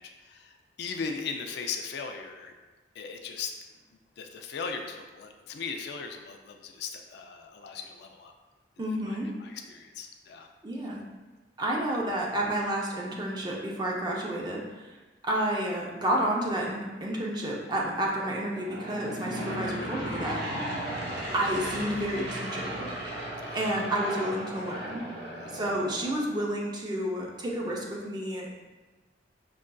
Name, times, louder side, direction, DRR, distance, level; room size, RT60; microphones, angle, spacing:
voice 1, 0.0-2.5 3.0-3.6 4.2-8.3 9.1-10.5 23.4-24.0 25.4-25.6, left 5 dB, 65° left, 4 dB, 0.3 m, -38 dB
voice 2, 8.8-9.3 10.6-11.0 11.6-15.0 15.2-20.4 21.3-22.9 23.5-25.1 25.5-28.5, right 1 dB, 25° right, -2 dB, 0.5 m, -30 dB
Aircraft / Engine, 18.5-26.5, right 1 dB, 65° right, 0.7 m, -36 dB
5.3 x 2.4 x 2.2 m, 1.2 s
head